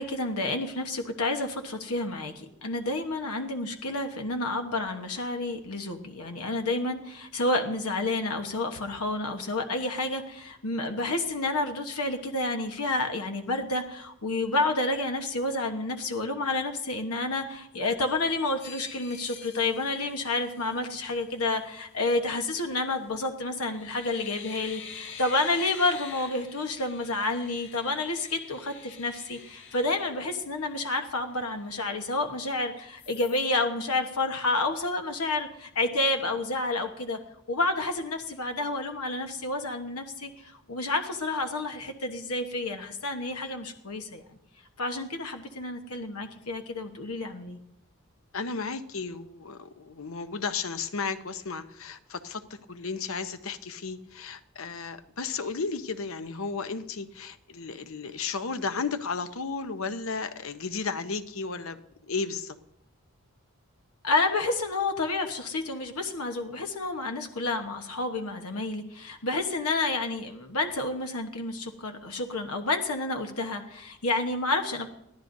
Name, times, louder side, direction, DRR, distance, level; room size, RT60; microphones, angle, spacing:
voice 1, 0.0-37.2 37.5-44.2 44.8-47.6 64.0-74.9, left 2 dB, 85° left, 5 dB, 1.2 m, -30 dB
sound 1, 18.0-21.0 22.9-23.2 23.6-30.9 31.3-31.4 31.7-32.6 33.0-33.5, left 6 dB, 55° left, 2.4 m, -47 dB
voice 2, 48.3-52.4 52.7-61.8 62.1-62.5, left 4 dB, 70° left, 10 dB, 0.8 m, -34 dB
22.0 x 15.0 x 2.7 m, 0.78 s
head